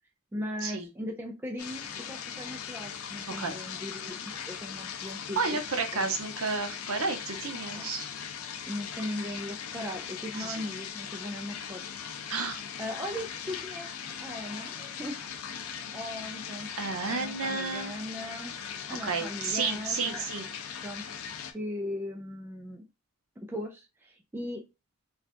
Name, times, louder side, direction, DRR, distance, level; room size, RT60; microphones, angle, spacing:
voice 1, 0.3-5.4 5.9-6.1 7.7-7.9 8.7-11.8 12.8-15.2 15.9-16.7 17.0-18.5 18.9-20.3 20.8-21.0 21.5-22.8 23.5-24.6, left 1 dB, 10° right, 1 dB, 0.3 m, -38 dB
sound 1, 1.6-21.5, left 7 dB, 85° left, 0.5 m, -39 dB
voice 2, 5.4-8.1 10.4-10.6 12.3-12.6 16.8-17.9 19.0-20.4, right 4 dB, 85° right, 6 dB, 0.8 m, -31 dB
3.4 x 2.3 x 2.5 m, 0.26 s
head